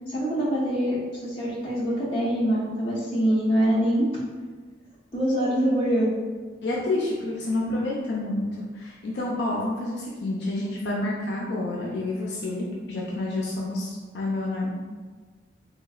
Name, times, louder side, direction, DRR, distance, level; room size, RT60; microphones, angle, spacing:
voice 1, 0.1-4.1 5.1-6.1, equal, 30° left, -7 dB, 0.8 m, -24 dB
voice 2, 6.6-14.7, left 2 dB, 65° left, -4 dB, 0.5 m, -29 dB
3.5 x 2.9 x 2.3 m, 1.4 s
head